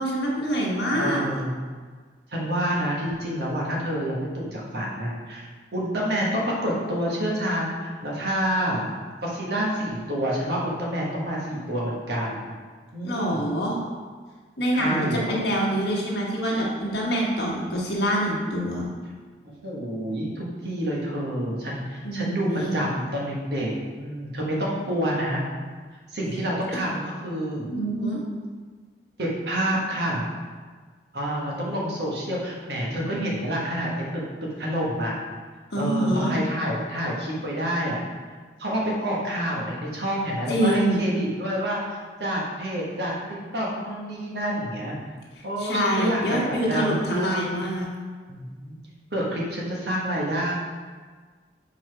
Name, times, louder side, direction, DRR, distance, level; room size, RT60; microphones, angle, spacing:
voice 1, 0.0-1.4 13.0-13.8 14.6-18.9 22.0-22.8 26.7-26.8 27.7-28.2 35.7-36.3 40.5-41.0 45.6-47.8, equal, 65° left, -3 dB, 1.3 m, -25 dB
voice 2, 0.9-1.5 2.3-5.5 5.7-8.9 9.2-12.5 12.9-13.5 14.7-15.4 19.4-23.7 24.0-25.4 26.1-27.7 29.2-30.2 31.1-35.1 35.7-38.0 38.6-43.1 43.5-45.0 45.4-47.6 48.3-48.8 49.1-50.5, equal, 65° right, -4 dB, 1.4 m, -28 dB
4.8 x 4.2 x 4.6 m, 1.5 s
head